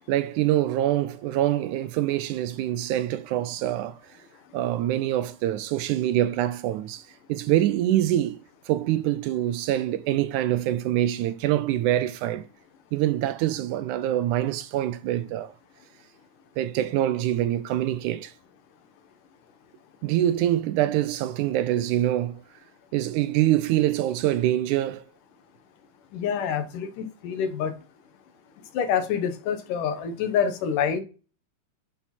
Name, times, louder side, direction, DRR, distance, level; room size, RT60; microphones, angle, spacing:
voice 1, 0.1-4.0 4.5-7.0 7.3-8.4 8.7-12.5 12.9-15.5 16.6-18.3 20.0-22.4 22.9-25.0, right 13 dB, 80° right, 2.0 m, -25 dB
voice 2, 26.1-27.7 28.7-31.0, left 7 dB, 80° left, 2.8 m, -26 dB
9.8 x 5.7 x 4.4 m
omnidirectional pair, 3.7 m